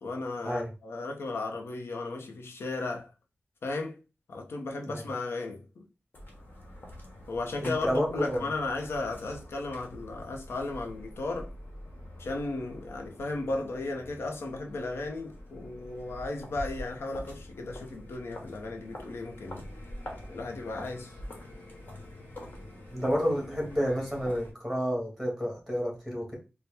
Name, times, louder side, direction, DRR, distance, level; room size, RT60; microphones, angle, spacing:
voice 1, 0.0-3.1 3.6-4.0 4.3-5.9 7.3-11.5 12.2-19.7 20.3-21.1, left 2 dB, 80° left, 0.7 m, -35 dB
sound 1, 6.1-24.5, left 1 dB, 55° left, 1.3 m, -45 dB
voice 2, 7.6-8.5 22.9-26.3, equal, 5° left, 1.8 m, -30 dB
4.3 x 2.2 x 3.4 m
wide cardioid pair, 90°, 4 cm